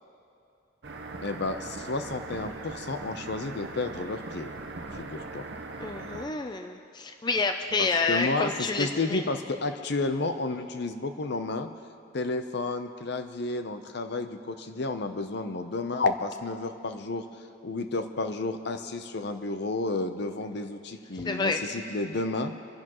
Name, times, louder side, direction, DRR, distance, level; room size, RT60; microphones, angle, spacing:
sound 1, 0.8-6.2, right 3 dB, 60° right, 0.9 m, -40 dB
voice 1, 1.2-4.5 4.9-5.5 7.8-11.7 12.1-17.3 17.6-22.5, left 3 dB, 55° left, 8 dB, 0.7 m, -31 dB
voice 2, 5.8-9.2 21.1-21.6, left 3 dB, 20° left, 5 dB, 0.4 m, -29 dB
24.5 x 11.0 x 3.0 m, 2.6 s
head